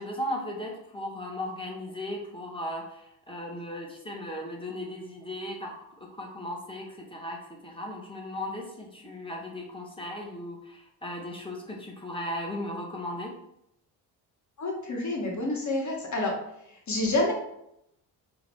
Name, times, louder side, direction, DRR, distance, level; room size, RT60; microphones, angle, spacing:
voice 1, 0.0-13.3, left 1 dB, 10° left, -1 dB, 1.1 m, -37 dB
voice 2, 14.6-16.3 16.9-17.3, left 2 dB, 35° left, 0 dB, 1.3 m, -28 dB
3.7 x 2.4 x 3.5 m, 0.79 s
hypercardioid pair, 50°, 48 cm